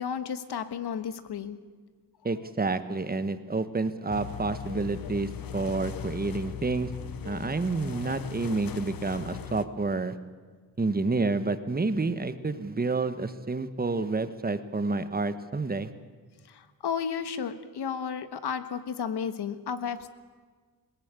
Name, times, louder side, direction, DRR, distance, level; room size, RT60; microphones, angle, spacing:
voice 1, 0.0-1.6 16.5-20.1, left 7 dB, 80° left, 11 dB, 1.4 m, -33 dB
voice 2, 2.2-6.9 7.2-10.2 10.8-15.9, right 3 dB, 25° right, 11 dB, 1.3 m, -29 dB
sound 1, 4.1-9.6, left 9 dB, 60° left, 1.0 m, -39 dB
20.5 x 18.0 x 8.3 m, 1.5 s
cardioid pair, 85°, 39 cm